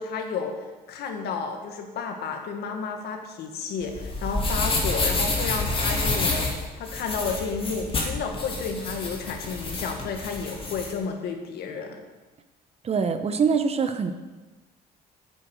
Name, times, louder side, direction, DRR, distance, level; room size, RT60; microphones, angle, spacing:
voice 1, 0.0-12.0, left 5 dB, 70° left, 4 dB, 1.7 m, -32 dB
sound 1, 3.8-10.9, left 2 dB, 30° left, 2.5 m, -28 dB
voice 2, 12.8-14.1, right 5 dB, 35° right, 8 dB, 1.0 m, -24 dB
8.5 x 8.1 x 6.4 m, 1.2 s
cardioid pair, 110°, 17 cm